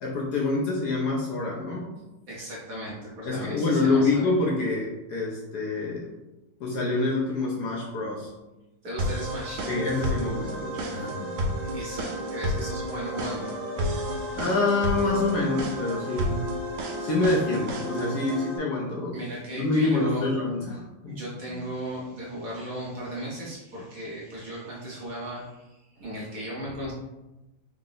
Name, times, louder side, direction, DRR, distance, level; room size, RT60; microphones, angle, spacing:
voice 1, 0.0-1.9 3.2-6.1 6.6-8.3 9.7-11.4 14.3-16.4 17.0-19.2 19.6-21.2, left 3 dB, 70° left, -4 dB, 1.1 m, -26 dB
voice 2, 2.3-4.2 8.8-9.7 11.6-13.6 19.1-20.3 21.1-26.9, right 1 dB, 60° right, -5 dB, 1.0 m, -36 dB
sound 1, 9.0-18.6, equal, 90° right, 1.4 m, -31 dB
3.7 x 2.1 x 3.8 m, 1.0 s
omnidirectional pair, 2.1 m